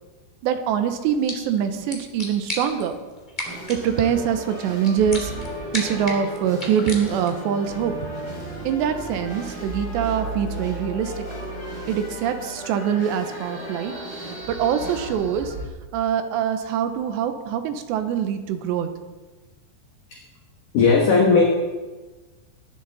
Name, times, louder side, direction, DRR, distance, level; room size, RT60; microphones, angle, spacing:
voice 1, 0.4-3.0 3.7-5.3 5.7-7.9 8.6-11.2 11.9-14.0 14.5-15.5 15.9-18.9, right 8 dB, 80° right, 8 dB, 3.1 m, -24 dB
sound 1, 1.0-7.5, left 1 dB, 15° left, 1.9 m, -36 dB
sound 2, 3.4-15.1, right 1 dB, 35° left, 6.2 m, -37 dB
sound 3, 5.0-15.6, right 2 dB, 35° right, 1.9 m, -37 dB
voice 2, 20.7-21.4, left 4 dB, 60° left, -1 dB, 2.6 m, -16 dB
19.5 x 11.5 x 4.2 m, 1.2 s
omnidirectional pair, 5.3 m